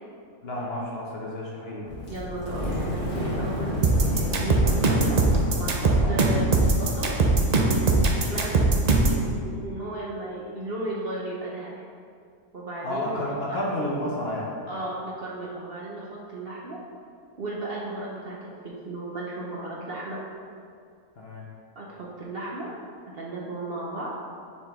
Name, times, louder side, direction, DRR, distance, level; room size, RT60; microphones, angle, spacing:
voice 1, 0.4-1.9 6.0-6.2 12.8-14.5 21.2-21.4, left 1 dB, 50° left, -3 dB, 1.0 m, -31 dB
sound 1, 1.8-7.5, left 1 dB, 75° left, 2.0 m, -31 dB
voice 2, 2.1-5.2 5.6-7.1 7.6-11.7 12.5-13.2 13.5-13.7 14.7-16.8 17.4-20.2 21.8-22.7 23.1-24.1, right 2 dB, 50° right, -4 dB, 0.9 m, -35 dB
sound 2, 3.8-9.2, right 3 dB, 75° right, 0.3 m, -20 dB
6.7 x 5.0 x 3.6 m, 2.3 s
omnidirectional pair, 1.6 m